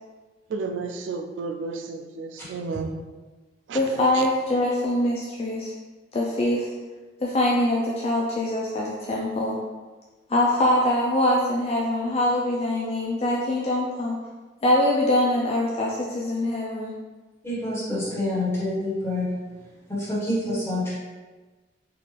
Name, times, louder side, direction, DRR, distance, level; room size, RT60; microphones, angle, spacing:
voice 1, 0.5-2.9 3.7-3.8 4.2-4.3, right 4 dB, 80° right, 6 dB, 0.3 m, -32 dB
voice 2, 3.7-5.7 6.1-6.7 7.2-9.6 10.3-14.2 14.6-16.9, left 1 dB, 35° left, -3 dB, 0.4 m, -23 dB
voice 3, 17.4-19.3 19.9-20.9, left 1 dB, 15° left, -10 dB, 1.4 m, -27 dB
3.6 x 2.4 x 3.3 m, 1.3 s
head